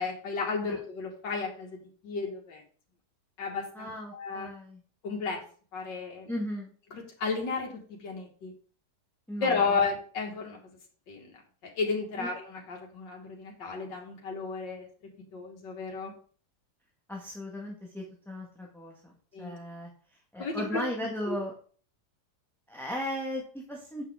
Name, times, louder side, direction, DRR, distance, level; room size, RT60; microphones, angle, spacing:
voice 1, 0.0-1.8 2.0-2.6 3.4-4.5 5.0-5.4 5.7-6.3 6.9-8.5 9.4-10.6 11.1-11.3 11.8-14.9 15.3-16.1 19.3-19.6 20.4-20.8 21.3-21.4, left 4 dB, 80° left, 0 dB, 2.4 m, -33 dB
voice 2, 3.7-4.8 6.3-6.7 9.3-9.5 12.2-12.3 17.1-19.1 19.4-19.9 20.3-21.5 22.7-24.0, left 1 dB, ahead, -2 dB, 1.4 m, -36 dB
8.6 x 6.0 x 3.7 m, 0.43 s
omnidirectional pair, 1.9 m